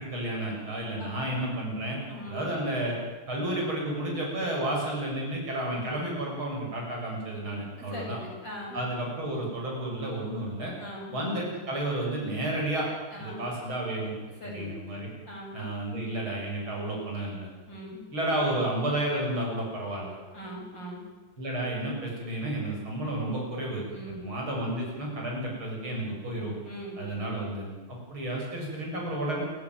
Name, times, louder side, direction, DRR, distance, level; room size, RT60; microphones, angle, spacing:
voice 1, 0.0-2.0 2.3-3.0 3.3-8.2 8.7-10.7 11.1-12.9 13.2-14.1 14.4-15.1 15.5-17.5 18.1-20.2 21.4-26.5 27.0-29.4, right 1 dB, 70° right, -2 dB, 8.1 m, -31 dB
voice 2, 1.0-1.5 2.1-2.6 7.9-8.9 10.8-11.2 13.1-13.5 14.4-14.7 15.3-15.6 17.7-18.1 20.3-21.0 23.9-24.3 26.6-27.3, equal, 55° left, -2 dB, 7.6 m, -41 dB
28.0 x 16.0 x 9.4 m, 1.3 s
omnidirectional pair, 2.4 m